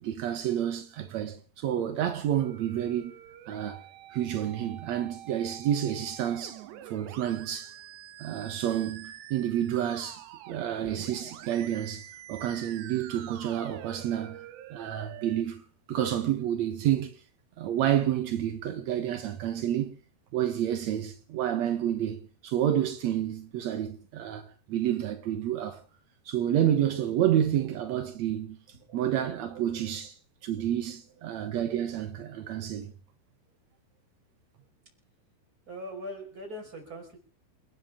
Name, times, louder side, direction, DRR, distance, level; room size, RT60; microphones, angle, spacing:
voice 1, 0.0-3.1 3.5-3.8 4.1-7.8 8.2-15.6 15.9-17.2 17.6-19.9 20.3-25.8 26.3-28.6 28.9-32.9, right 11 dB, 70° right, 1.7 m, -29 dB
Musical instrument, 2.4-15.4, right 12 dB, 85° right, 3.4 m, -46 dB
voice 2, 28.7-29.0 29.4-30.0 30.6-30.7 31.1-31.2 35.7-37.2, equal, 20° right, 5.3 m, -43 dB
29.0 x 12.5 x 3.7 m
omnidirectional pair, 4.9 m